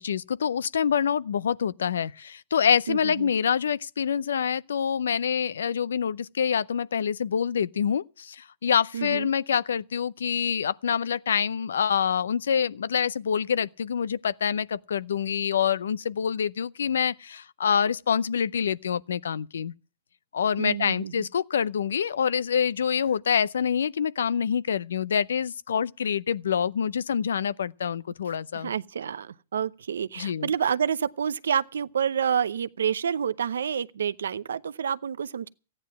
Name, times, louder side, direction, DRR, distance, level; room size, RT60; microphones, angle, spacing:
voice 1, 0.0-19.7 20.3-28.7 30.2-30.5, left 7 dB, 85° left, 0.6 m, -26 dB
voice 2, 2.9-3.3 8.9-9.3 20.6-21.3 28.5-35.5, right 8 dB, 85° right, 0.7 m, -28 dB
14.5 x 9.9 x 7.3 m
hypercardioid pair, 140°, 0 cm